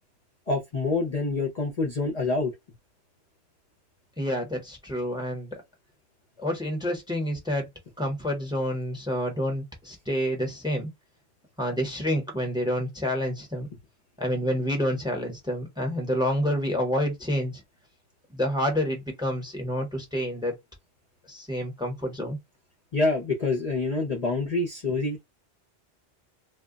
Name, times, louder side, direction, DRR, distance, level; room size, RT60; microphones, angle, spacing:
voice 1, 0.5-2.5 22.9-25.2, left 3 dB, 45° left, 0.6 m, -26 dB
voice 2, 4.2-5.5 6.4-7.7 8.0-10.9 11.6-13.7 14.2-17.5 18.3-20.5 21.3-22.4, equal, 5° right, 0.8 m, -28 dB
2.1 x 2.1 x 3.7 m
omnidirectional pair, 1.1 m